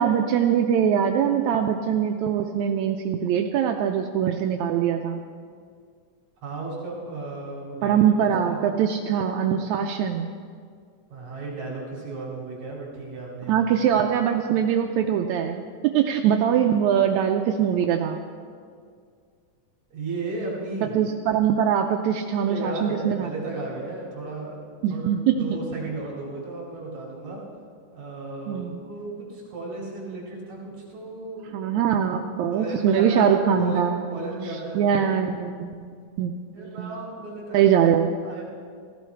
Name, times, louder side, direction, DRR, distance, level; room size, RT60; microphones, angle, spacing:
voice 1, 0.0-5.2 7.8-10.3 13.5-18.2 21.0-23.3 24.8-25.6 28.5-28.8 31.5-34.0 34.8-36.3 36.6-37.0 37.5-38.1, right 8 dB, 80° right, 4 dB, 1.8 m, -22 dB
voice 2, 6.4-8.6 11.1-13.6 19.9-21.0 22.5-27.4 27.9-31.6 32.5-35.5 36.5-37.7 38.2-38.4, right 2 dB, 60° right, -3 dB, 3.6 m, -35 dB
16.0 x 15.5 x 4.5 m, 2.1 s
omnidirectional pair, 3.7 m